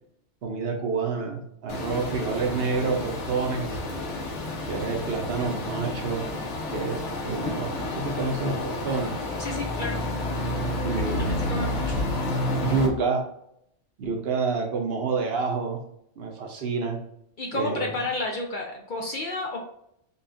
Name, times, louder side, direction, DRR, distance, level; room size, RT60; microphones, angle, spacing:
voice 1, 0.4-3.8 4.7-6.2 6.7-9.1 10.8-11.3 12.6-13.2 14.0-15.8 16.2-17.0 17.5-17.9, right 4 dB, 60° right, 2 dB, 0.8 m, -28 dB
sound 1, 1.7-12.9, left 2 dB, 80° left, 1.2 m, -30 dB
voice 2, 9.4-10.0 10.9-12.0 17.4-19.6, left 2 dB, 60° left, 1 dB, 0.6 m, -31 dB
5.4 x 2.3 x 2.5 m, 0.75 s
omnidirectional pair, 1.2 m